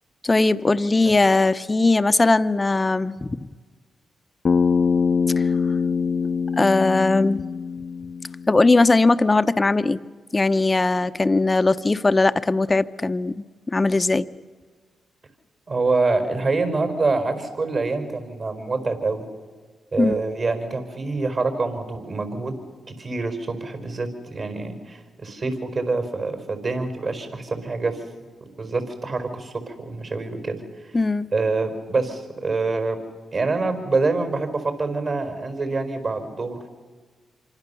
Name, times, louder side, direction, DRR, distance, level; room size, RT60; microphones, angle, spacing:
voice 1, 0.2-3.5 5.4-5.5 6.6-7.4 8.5-10.0 10.3-14.3 20.0-20.2 30.9-31.3, left 3 dB, 30° left, 12 dB, 0.9 m, -19 dB
Bass guitar, 4.4-8.7, left 5 dB, 55° left, 0.8 m, -23 dB
voice 2, 15.7-19.2 19.9-22.5 22.9-28.0 28.6-30.9 31.3-33.0 33.3-36.7, right 3 dB, 55° right, 6 dB, 4.8 m, -26 dB
26.5 x 24.5 x 7.1 m, 1.5 s
supercardioid pair, 50°, 0 cm